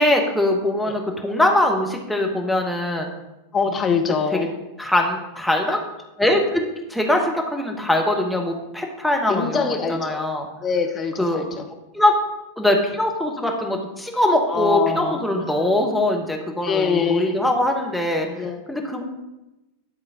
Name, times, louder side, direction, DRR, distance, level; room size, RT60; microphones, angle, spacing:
voice 1, 0.0-3.1 4.3-4.5 4.8-5.8 6.2-10.5 11.2-11.5 11.9-12.1 12.6-18.4 18.7-19.0, left 1 dB, 5° left, 1 dB, 1.1 m, -22 dB
voice 2, 3.5-4.6 9.3-10.2 10.6-11.7 14.5-15.2 15.5-15.7 16.6-17.4 18.3-18.6, left 5 dB, 25° left, 5 dB, 0.8 m, -24 dB
10.5 x 3.7 x 5.0 m, 0.99 s
figure-of-eight pair, 90°, 0 cm